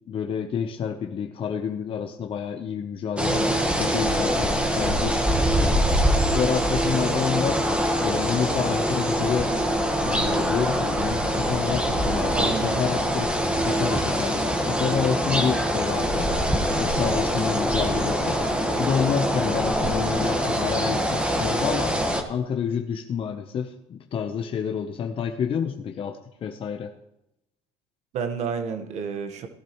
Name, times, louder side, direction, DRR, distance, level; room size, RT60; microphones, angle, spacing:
voice 1, 0.1-5.7 6.3-7.6 8.0-9.5 10.0-13.3 13.6-16.3 16.8-18.4 18.8-22.0 22.3-26.9, left 7 dB, 45° left, 3 dB, 1.0 m, -29 dB
sound 1, 3.2-22.2, equal, 10° right, 1.6 m, -24 dB
voice 2, 12.3-12.8 28.1-29.5, right 6 dB, 60° right, 6 dB, 1.5 m, -30 dB
17.0 x 12.0 x 3.2 m, 0.86 s
supercardioid pair, 95°, 13 cm